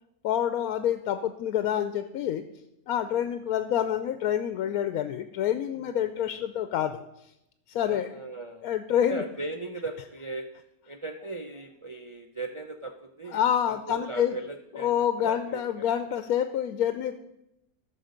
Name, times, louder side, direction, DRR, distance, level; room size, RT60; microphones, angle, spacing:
voice 1, 0.2-2.4 2.9-7.0 7.7-8.1 8.6-9.2 13.3-14.3 14.7-17.2, left 10 dB, 85° left, 9 dB, 1.1 m, -27 dB
voice 2, 5.9-6.4 7.7-8.7 9.1-10.5 10.9-13.4 13.7-15.9, right 2 dB, 50° right, 4 dB, 0.3 m, -38 dB
13.5 x 6.0 x 5.1 m, 0.84 s
omnidirectional pair, 1.5 m